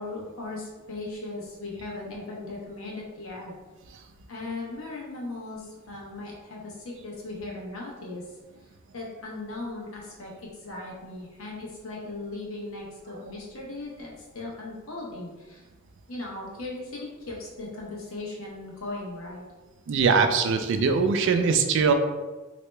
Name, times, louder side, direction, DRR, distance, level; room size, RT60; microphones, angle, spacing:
voice 1, 0.0-3.5 4.3-8.2 8.9-15.6 16.1-19.4, left 2 dB, 75° left, -3 dB, 1.0 m, -38 dB
voice 2, 19.9-21.9, right 5 dB, 60° right, 6 dB, 0.4 m, -22 dB
3.2 x 2.8 x 3.2 m, 1.2 s
head